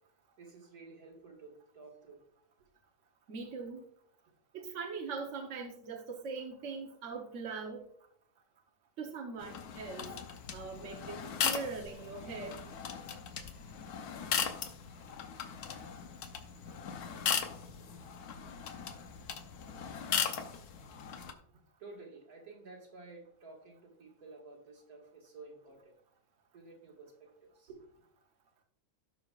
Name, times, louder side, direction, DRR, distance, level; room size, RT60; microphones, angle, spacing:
voice 1, 0.4-2.2 21.8-25.9 26.5-27.9, right 3 dB, 75° right, 0 dB, 2.3 m, -52 dB
voice 2, 3.3-3.8 4.5-7.9 9.0-10.1 10.5-12.6, right 4 dB, 55° right, 1 dB, 1.2 m, -41 dB
sound 1, 9.4-21.3, left 7 dB, 80° left, 1.3 m, -38 dB
16.5 x 5.5 x 2.4 m, 0.69 s
omnidirectional pair, 1.6 m